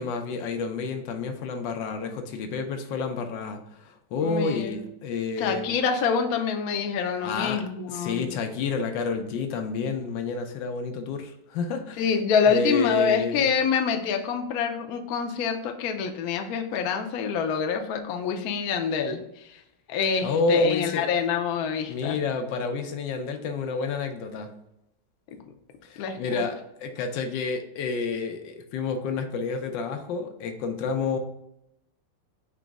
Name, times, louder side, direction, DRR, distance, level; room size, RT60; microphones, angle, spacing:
voice 1, 0.0-5.7 7.2-7.6 7.9-12.1 12.4-13.5 20.2-21.1 21.9-24.5 25.8-31.2, left 4 dB, 85° left, 6 dB, 1.4 m, -29 dB
voice 2, 4.2-4.8 5.4-8.2 12.0-19.2 19.5-19.6 19.9-22.2 26.0-26.5, left 6 dB, 70° left, 4 dB, 0.9 m, -26 dB
5.0 x 3.0 x 3.5 m, 0.82 s
omnidirectional pair, 2.0 m